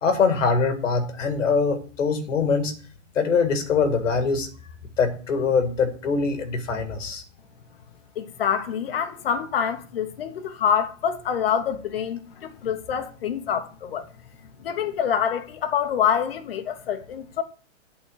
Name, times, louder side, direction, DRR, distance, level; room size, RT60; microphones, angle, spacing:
voice 1, 0.0-2.7 3.2-4.5 5.0-7.2, left 5 dB, 80° left, 1.9 m, -23 dB
voice 2, 8.2-14.0 14.6-17.4, left 8 dB, 50° left, 0.9 m, -26 dB
8.3 x 3.7 x 6.3 m
hypercardioid pair, 175°, 38 cm